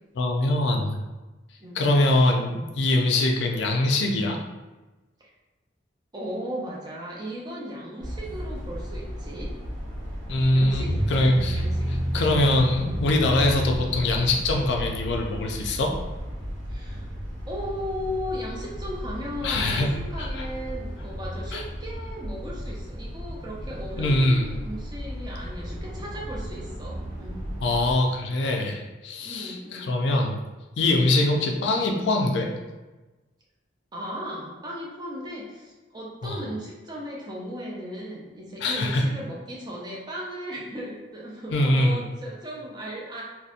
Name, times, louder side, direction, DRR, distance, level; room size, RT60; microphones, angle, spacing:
voice 1, 0.2-1.0 1.8-4.4 10.3-11.6 12.1-15.9 19.4-19.9 20.2-20.5 21.5-21.6 24.0-24.5 27.6-30.4 30.8-32.5 36.2-36.4 38.6-39.0 41.5-42.0, left 2 dB, 65° left, 2 dB, 0.3 m, -23 dB
voice 2, 6.1-9.6 10.5-12.2 16.7-17.1 17.5-27.4 29.2-30.0 33.9-43.2, equal, 20° right, -4 dB, 0.4 m, -36 dB
sound 1, 8.0-27.9, equal, 80° right, 0.7 m, -32 dB
2.6 x 2.1 x 2.4 m, 1.2 s
head